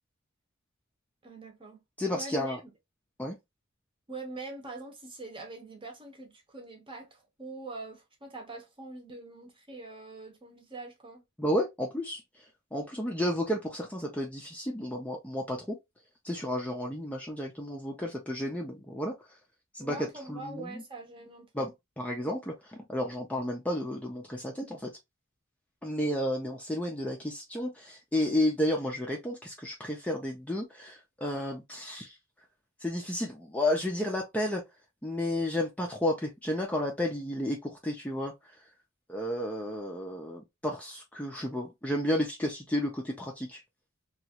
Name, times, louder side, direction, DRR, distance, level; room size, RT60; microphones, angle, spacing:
voice 1, 1.2-1.8 2.1-2.6 4.1-11.2 19.8-21.7, right 2 dB, 25° right, 0.8 m, -43 dB
voice 2, 2.0-2.6 3.2-3.4 11.4-12.2 12.7-15.8 16.2-19.1 19.7-20.8 21.5-21.7 22.0-24.9 25.8-32.1 32.8-34.6 35.0-38.3 39.1-43.6, left 1 dB, 5° left, 0.4 m, -32 dB
3.0 x 2.3 x 2.8 m
head